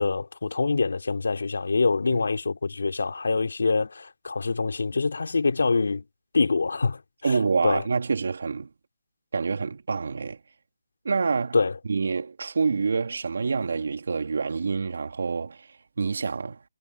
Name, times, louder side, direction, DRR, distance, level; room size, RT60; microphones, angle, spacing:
voice 1, 0.0-6.0 6.3-7.9 11.5-11.8, left 4 dB, 85° left, 3.9 m, -25 dB
voice 2, 7.2-8.7 9.3-10.4 11.0-11.6 11.9-16.6, right 4 dB, 70° right, 3.0 m, -27 dB
hypercardioid pair, 165°, 0 cm